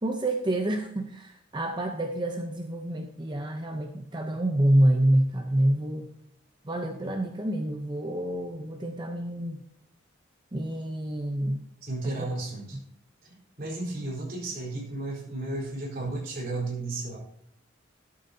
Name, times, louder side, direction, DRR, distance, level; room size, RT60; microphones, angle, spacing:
voice 1, 0.0-6.1 6.6-9.6 10.5-11.7 12.0-12.3, right 1 dB, 25° right, 4 dB, 0.7 m, -27 dB
voice 2, 11.8-12.8 13.2-17.2, right 2 dB, 50° right, -3 dB, 4.3 m, -34 dB
12.5 x 11.5 x 2.8 m, 0.71 s
head